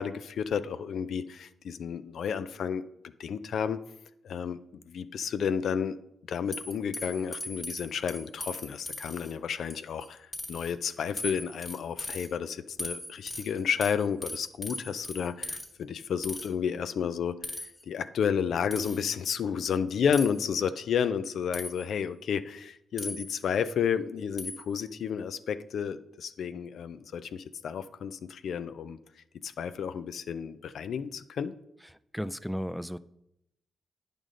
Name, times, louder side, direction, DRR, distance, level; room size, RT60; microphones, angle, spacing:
voice 1, 0.0-2.8 3.2-3.8 4.2-4.6 4.9-6.0 6.3-29.0 29.4-31.5, left 7 dB, 75° left, 12 dB, 0.4 m, -31 dB
sound 1, 6.5-9.3 9.7-10.1 10.3-10.7 11.2-12.3 12.8-15.7 16.2-16.5 17.4-17.8 18.7-19.1 20.1-20.4 21.5-22.0 23.0-23.6 24.4-24.8, left 1 dB, 30° left, 1.4 m, -39 dB
voice 2, 31.8-33.0, equal, ahead, 14 dB, 0.3 m, -35 dB
9.1 x 5.1 x 3.7 m, 0.80 s
cardioid pair, 60°, 0 cm